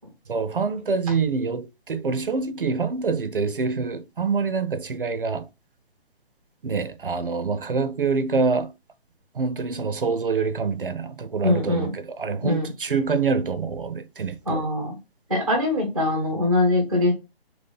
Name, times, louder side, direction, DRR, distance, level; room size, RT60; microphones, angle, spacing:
voice 1, 0.3-5.5 6.6-8.7 9.3-14.7, right 4 dB, 55° right, 0.6 m, -26 dB
voice 2, 11.4-11.9 12.4-12.7 14.5-15.0 15.3-17.1, left 2 dB, ahead, 0.6 m, -22 dB
3.9 x 3.0 x 3.8 m
figure-of-eight pair, 140°, 32 cm